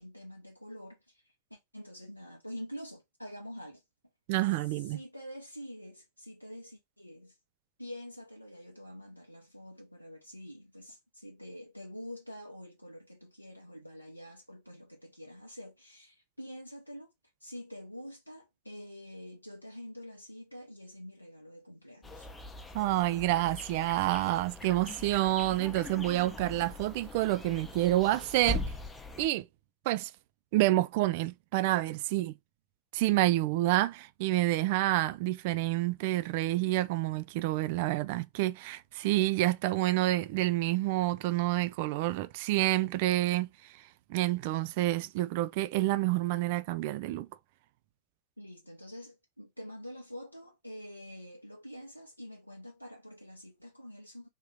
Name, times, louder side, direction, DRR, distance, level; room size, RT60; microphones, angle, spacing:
voice 1, 0.0-3.8 4.5-7.4 7.8-17.1 17.4-22.3 48.4-54.3, equal, 90° left, 0.6 m, -46 dB
voice 2, 4.3-5.0 22.7-28.6 29.2-29.5 29.9-30.1 30.5-32.3 32.9-43.5 44.1-47.3, right 16 dB, 50° right, 0.3 m, -28 dB
sound 1, 22.0-29.3, left 2 dB, 15° left, 0.7 m, -41 dB
3.6 x 2.8 x 4.8 m
figure-of-eight pair, 90°, 0 cm